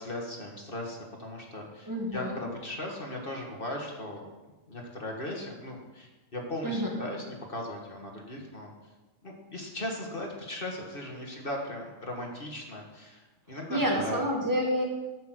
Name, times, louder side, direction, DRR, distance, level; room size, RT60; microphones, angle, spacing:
voice 1, 0.0-4.2 4.7-8.7 9.2-13.2 13.5-14.2, left 1 dB, 40° left, 0 dB, 2.0 m, -38 dB
voice 2, 1.9-2.4 6.6-7.0 13.7-14.8, equal, 15° right, -1 dB, 2.1 m, -28 dB
10.5 x 6.3 x 7.9 m, 1.1 s
omnidirectional pair, 1.4 m